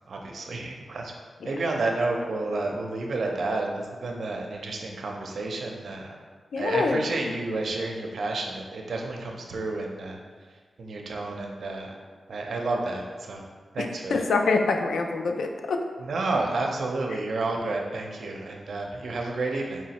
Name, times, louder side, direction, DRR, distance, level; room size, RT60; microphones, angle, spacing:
voice 1, 0.1-1.1 1.4-6.2 6.6-10.2 10.8-12.0 12.3-13.4 13.7-14.2 16.0-19.8, right 2 dB, 70° right, 1 dB, 0.5 m, -30 dB
voice 2, 6.5-7.0 13.8-15.8 17.1-17.2, left 3 dB, 85° left, 4 dB, 0.3 m, -25 dB
4.4 x 3.0 x 2.8 m, 1.5 s
wide cardioid pair, 110°, 0 cm